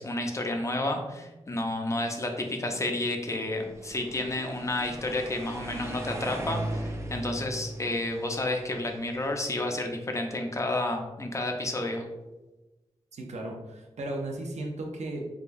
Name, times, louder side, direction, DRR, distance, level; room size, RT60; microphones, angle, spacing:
voice 1, 0.0-12.1, left 2 dB, 25° left, 3 dB, 0.5 m, -31 dB
sound 1, 3.6-9.7, right 1 dB, 25° right, 0.5 m, -38 dB
voice 2, 13.1-15.2, right 1 dB, 85° right, 0 dB, 0.7 m, -35 dB
4.8 x 2.3 x 2.5 m, 1.1 s
wide cardioid pair, 95°, 11 cm